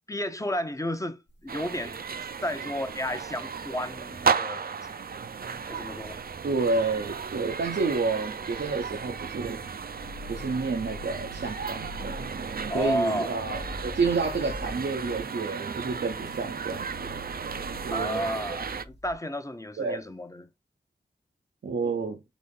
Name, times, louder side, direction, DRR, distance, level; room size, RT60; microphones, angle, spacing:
voice 1, 0.1-2.0 2.4-4.7 5.7-6.2 12.7-13.3 17.9-20.5, equal, 20° left, 0.6 m, -32 dB
Labial Dub, 1.3-3.9 5.1-19.1, left 2 dB, 80° left, 1.0 m, -46 dB
rio street noise, 1.5-18.8, right 6 dB, 55° right, 0.4 m, -34 dB
voice 2, 6.4-9.6 10.3-12.2 12.7-17.1 17.8-18.2 19.8-20.0 21.6-22.2, right 4 dB, 90° right, 0.7 m, -29 dB
4.0 x 3.1 x 3.7 m
wide cardioid pair, 50°, 18 cm